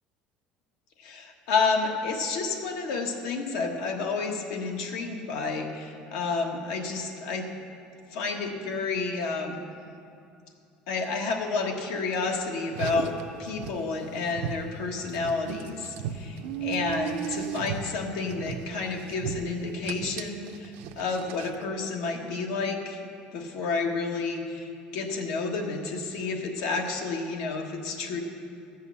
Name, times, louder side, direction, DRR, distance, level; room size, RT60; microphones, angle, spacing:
voice 1, 1.0-7.5 8.1-9.6 10.9-13.1 13.4-23.0 23.3-28.2, left 4 dB, 85° left, 2 dB, 1.4 m, -30 dB
Car, 12.7-21.7, right 8 dB, 80° right, 0.6 m, -37 dB
13.0 x 5.5 x 8.1 m, 2.5 s
cardioid pair, 140°, 3 cm